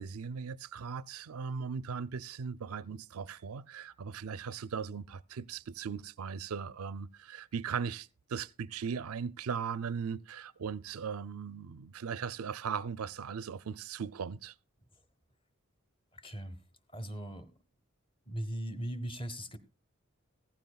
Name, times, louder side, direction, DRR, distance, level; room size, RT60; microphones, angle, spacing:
voice 1, 0.0-14.5, right 6 dB, 90° right, 0.5 m, -38 dB
voice 2, 16.1-16.6 16.9-17.5 18.3-19.6, right 1 dB, 25° left, 1.0 m, -39 dB
15.5 x 14.5 x 2.3 m
head